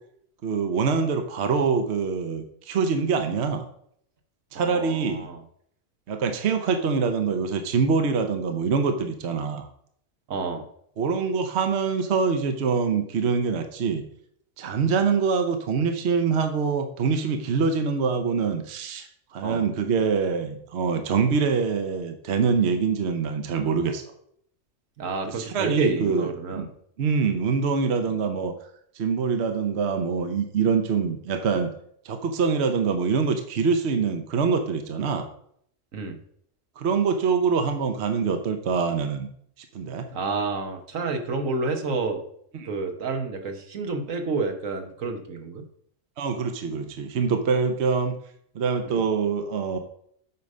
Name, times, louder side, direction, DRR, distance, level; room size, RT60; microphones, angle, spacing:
voice 1, 0.4-3.7 4.5-5.3 6.1-9.7 11.0-14.0 14.6-24.0 25.3-26.7 27.0-28.5 28.9-31.7 32.0-35.3 36.8-39.3 39.7-40.1 42.5-42.7 46.2-48.1 48.5-49.8, right 5 dB, 60° right, 7 dB, 1.0 m, -24 dB
voice 2, 4.5-5.4 10.3-10.6 19.4-19.6 25.0-26.7 35.9-36.2 40.1-42.2 42.6-45.6 48.9-49.0, right 4 dB, 80° right, 5 dB, 1.5 m, -29 dB
8.5 x 5.0 x 5.4 m, 0.67 s
omnidirectional pair, 1.4 m